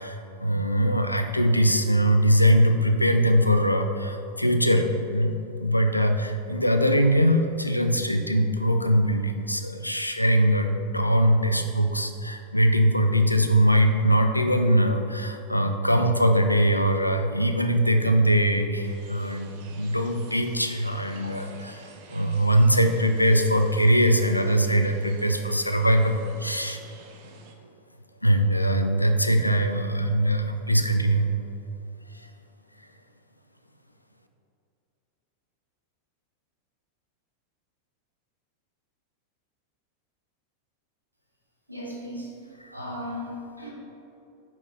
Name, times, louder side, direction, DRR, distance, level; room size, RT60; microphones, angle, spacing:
voice 1, 0.0-26.8 28.2-31.3 32.1-32.3 42.7-42.8, equal, 85° left, 6 dB, 0.4 m, -22 dB
sound 1, 18.8-27.5, right 4 dB, 45° right, 0.6 m, -49 dB
voice 2, 41.7-43.7, left 1 dB, 85° right, -3 dB, 1.1 m, -37 dB
5.6 x 4.4 x 4.2 m, 2.7 s
figure-of-eight pair, 90°, 0 cm